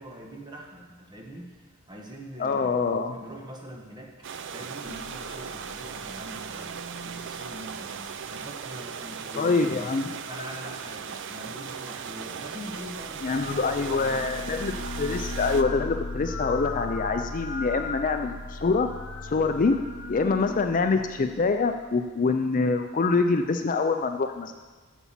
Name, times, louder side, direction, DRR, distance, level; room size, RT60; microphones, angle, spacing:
voice 1, 0.0-4.1 4.5-9.9 10.2-14.3, equal, 20° right, 0 dB, 1.4 m, -43 dB
voice 2, 2.4-3.1 9.3-10.1 13.2-14.7 15.0-18.9 19.3-19.8 20.1-24.5, left 4 dB, 40° left, 6 dB, 0.4 m, -25 dB
sound 1, 4.2-15.6, right 7 dB, 55° right, 0.5 m, -38 dB
sound 2, 4.8-8.4 12.7-21.9, left 2 dB, 60° left, 1.0 m, -38 dB
8.3 x 7.0 x 7.4 m, 1.4 s
head